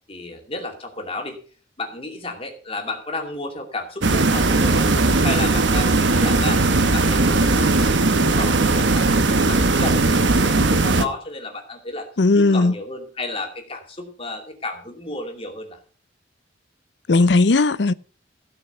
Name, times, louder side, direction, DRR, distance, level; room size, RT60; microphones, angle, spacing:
voice 1, 0.1-1.4 1.8-6.6 6.9-12.1 12.4-15.8, left 2 dB, 30° left, 2.6 m, -32 dB
sound 1, 4.0-11.1, right 3 dB, 85° right, 1.2 m, -18 dB
voice 2, 12.2-12.8 17.1-17.9, left 3 dB, 70° left, 0.6 m, -16 dB
16.5 x 6.3 x 6.8 m
head